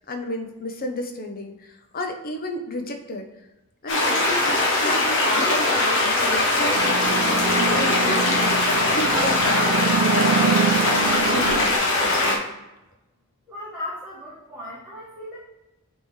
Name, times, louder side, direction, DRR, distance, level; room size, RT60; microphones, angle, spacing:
voice 1, 0.1-3.3 3.8-4.5 4.8-12.4, left 1 dB, 40° left, 4 dB, 0.7 m, -33 dB
sound 1, 3.9-12.4, left 2 dB, 55° left, 1.1 m, -21 dB
sound 2, 6.7-11.7, right 4 dB, 80° right, 0.7 m, -25 dB
voice 2, 13.5-15.4, left 1 dB, 5° right, -10 dB, 1.4 m, -36 dB
8.2 x 3.7 x 3.1 m, 0.99 s
head